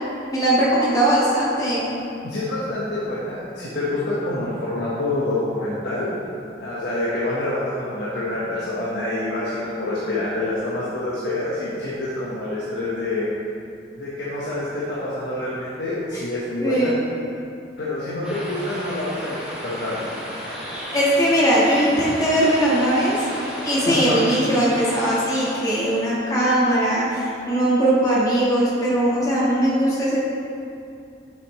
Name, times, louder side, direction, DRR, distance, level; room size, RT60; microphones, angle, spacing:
voice 1, 0.3-1.8 16.1-16.2 16.6-16.9 20.9-23.1 23.6-30.2, right 1 dB, 20° left, -7 dB, 1.6 m, -20 dB
voice 2, 2.2-6.1 6.6-13.2 13.9-16.9 17.8-20.1 23.8-24.2, left 2 dB, 70° left, -9 dB, 1.4 m, -27 dB
sound 1, 18.2-26.0, equal, 5° right, 1.6 m, -34 dB
8.5 x 7.3 x 3.2 m, 2.6 s
head